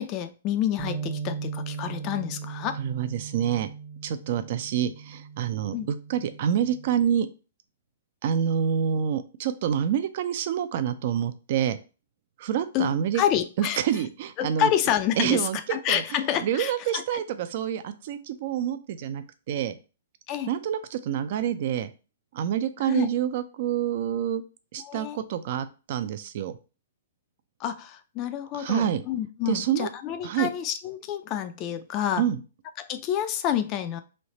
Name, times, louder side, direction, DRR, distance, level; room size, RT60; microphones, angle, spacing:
voice 1, 0.0-2.8 5.7-5.9 12.7-13.8 14.4-17.2 20.3-20.5 22.9-23.1 24.8-25.2 27.6-32.2 32.8-34.0, left 10 dB, 35° left, 9 dB, 0.4 m, -28 dB
Bass guitar, 0.8-7.0, right 6 dB, 20° right, 0.8 m, -38 dB
voice 2, 2.8-3.7 4.0-7.3 8.2-11.8 12.4-13.2 13.6-14.7 15.2-16.0 16.4-19.8 20.5-21.9 22.3-24.4 24.7-26.6 28.5-29.0 29.5-29.9 30.2-30.5 32.2-32.4, right 9 dB, 50° right, 11 dB, 0.5 m, -27 dB
3.2 x 2.7 x 4.0 m, 0.33 s
hypercardioid pair, 120°, 0 cm